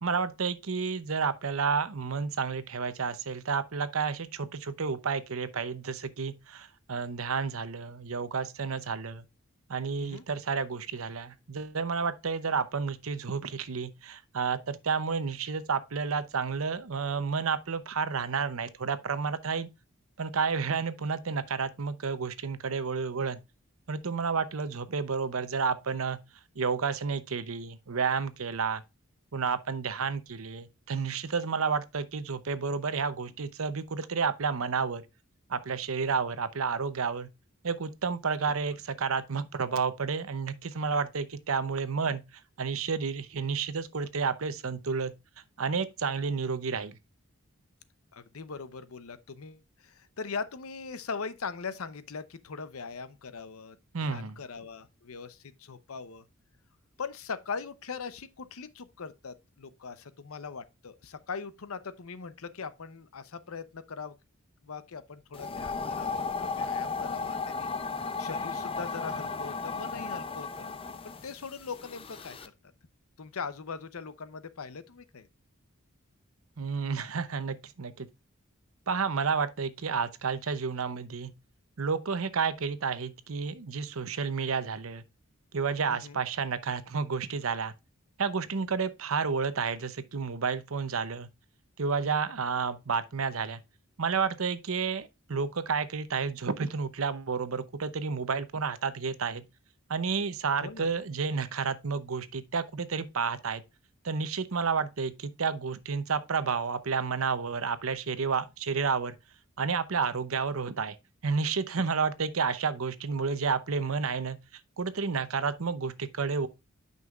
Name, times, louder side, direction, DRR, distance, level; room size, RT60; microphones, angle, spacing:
voice 1, 0.0-9.2 9.7-19.7 20.2-23.4 23.9-26.2 26.6-28.8 29.3-35.0 35.5-37.3 37.6-42.2 42.6-45.1 45.6-47.0 53.9-54.4 76.6-78.1 78.9-81.3 81.8-85.0 85.5-87.7 88.2-91.3 91.8-93.6 94.0-99.4 99.9-103.6 104.0-109.1 109.6-111.0 111.2-114.4 114.8-116.5, right 5 dB, 75° right, 0.7 m, -31 dB
voice 2, 48.1-53.8 54.0-56.2 57.0-64.1 64.6-67.7 68.0-70.7 71.0-72.5 73.2-75.3 85.8-86.2 100.6-100.9, left 5 dB, 85° left, 0.7 m, -40 dB
sound 1, 65.3-72.5, left 4 dB, 25° left, 0.5 m, -35 dB
9.3 x 5.5 x 2.4 m
head